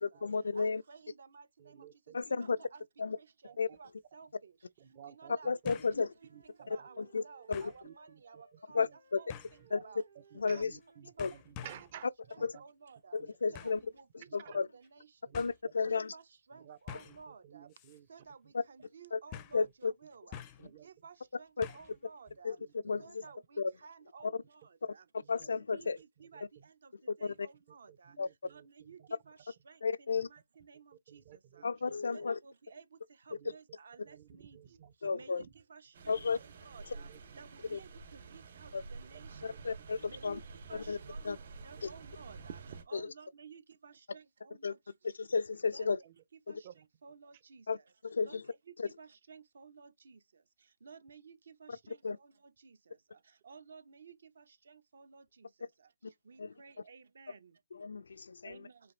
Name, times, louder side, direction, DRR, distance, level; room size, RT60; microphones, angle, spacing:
voice 1, 0.0-0.8 2.1-2.6 3.0-3.2 3.6-3.7 5.4-6.1 6.7-7.2 7.5-7.7 8.7-9.2 9.7-9.8 10.4-10.7 11.2-11.3 12.4-12.5 13.1-13.8 14.3-14.7 15.3-16.1 18.5-18.6 19.1-19.2 19.5-19.9 21.6-21.7 22.4-22.6 22.8-23.2 23.6-23.7 24.2-24.4 24.8-24.9 25.3-26.0 27.2-27.5 28.2-28.3 29.8-30.3 31.6-32.4 35.0-35.4 36.1-36.4 37.7-37.8 38.7-38.8 39.4-40.4 40.7-41.0 41.2-41.4 41.8-41.9 44.6-44.8 45.0-46.0 46.5-46.6 47.7-47.8 48.0-48.4 48.8-48.9 52.0-52.2 56.0-56.1 56.4-56.5 57.7-58.6, left 4 dB, 85° left, 0.4 m, -33 dB
voice 2, 0.5-1.9 2.3-2.8 3.2-4.5 5.1-5.5 6.0-6.1 6.4-8.9 9.1-9.3 9.8-10.0 10.5-10.7 11.0-11.3 12.3-13.2 13.5-15.1 15.9-16.2 16.5-17.7 18.1-20.4 20.8-22.6 23.0-25.0 25.7-26.9 27.2-28.1 28.5-31.2 31.5-31.7 32.1-32.8 33.3-34.6 35.1-37.1 37.4-39.5 40.1-40.4 40.7-41.3 41.6-42.6 42.9-44.8 45.7-45.9 46.5-46.7 47.0-47.6 48.2-48.4 48.8-50.2 50.8-52.3 52.6-52.8 53.4-55.5 56.3-57.5 58.4-58.9, right 5 dB, 70° right, 0.8 m, -55 dB
voice 3, 1.6-2.2 3.1-3.2 3.4-3.8 4.8-5.9 6.3-6.9 7.7-9.0 9.6-9.8 10.3-12.1 12.4-12.7 13.2-13.6 14.2-14.6 15.3-15.9 16.5-18.1 18.8-18.9 19.6-19.7 20.6-20.9 21.6-21.8 22.3-23.3 25.2-25.7 26.2-26.7 27.9-29.1 31.1-31.9 33.3-33.6 34.1-35.1 35.4-35.5 36.2-36.4 36.9-37.4 39.1-39.2 39.5-40.2 40.7-40.9 41.2-41.3 41.6-41.8 46.0-46.1 46.6-46.9, right 10 dB, 35° right, 0.5 m, -56 dB
sound 1, 3.7-3.8 5.7-6.0 6.4-6.5 7.5-7.8 9.3-9.6 10.6-10.8 11.2-11.9 13.5-13.9 14.8-14.9 15.3-15.6 16.9-17.2 17.7-18.0 18.2-18.3 19.3-19.7 20.3-20.7 21.6-22.0 22.3-22.4, left 10 dB, 20° left, 0.4 m, -48 dB
Wind instrument woodwind instrument, 5.8-11.5, right 4 dB, 85° right, 2.0 m, -64 dB
sound 2, 35.9-42.8, right 4 dB, 50° right, 2.0 m, -50 dB
5.2 x 2.5 x 3.1 m
hypercardioid pair, 165°, 0 cm